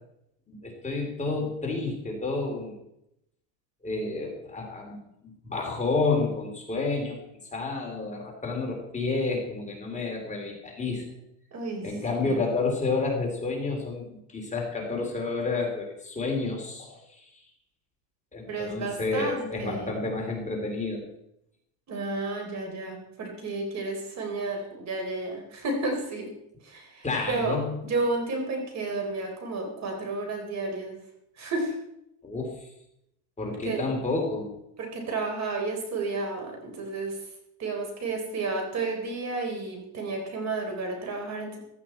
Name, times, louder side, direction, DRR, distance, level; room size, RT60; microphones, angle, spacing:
voice 1, 0.5-2.8 3.8-7.2 7.5-11.0 11.8-17.2 18.3-21.0 27.0-27.8 32.2-32.7 33.4-34.5, left 3 dB, 15° left, 0 dB, 3.1 m, -30 dB
voice 2, 11.5-12.4 18.5-19.9 21.9-26.3 26.6-27.6 27.8-31.0 31.4-31.7 33.6-33.9 34.8-37.2 37.6-41.6, right 3 dB, 35° right, 3 dB, 3.9 m, -32 dB
15.5 x 13.0 x 4.4 m, 0.80 s
cardioid pair, 140°, 46 cm